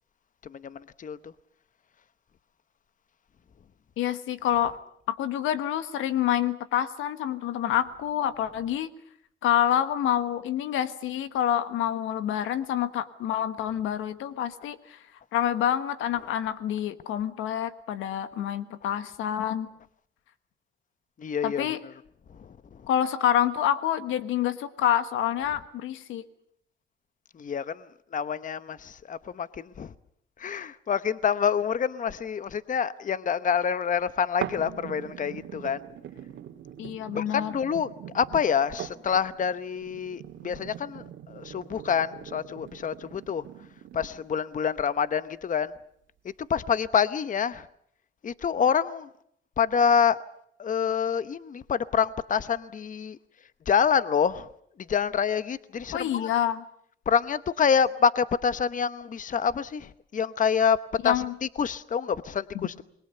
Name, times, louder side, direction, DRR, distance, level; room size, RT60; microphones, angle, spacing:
voice 1, 0.4-1.2 21.2-21.8 27.4-27.8 28.1-29.9 30.4-35.8 37.2-43.5 43.9-45.7 46.5-47.7 48.2-49.1 49.6-50.2 50.6-53.2 53.7-54.5 54.9-56.3 57.1-60.8 61.0-61.2 61.6-62.7, left 7 dB, 40° left, 14 dB, 1.0 m, -27 dB
voice 2, 4.0-4.8 5.1-8.9 9.4-15.0 15.3-19.7 21.4-21.8 22.9-26.2 36.8-37.5 55.9-56.6 61.0-61.3 62.5-62.7, left 10 dB, 90° left, 12 dB, 1.6 m, -27 dB
sound 1, 34.4-44.4 45.0-45.1, right 10 dB, 70° right, 2.3 m, -41 dB
28.0 x 21.5 x 6.8 m, 0.69 s
cardioid pair, 90°, 20 cm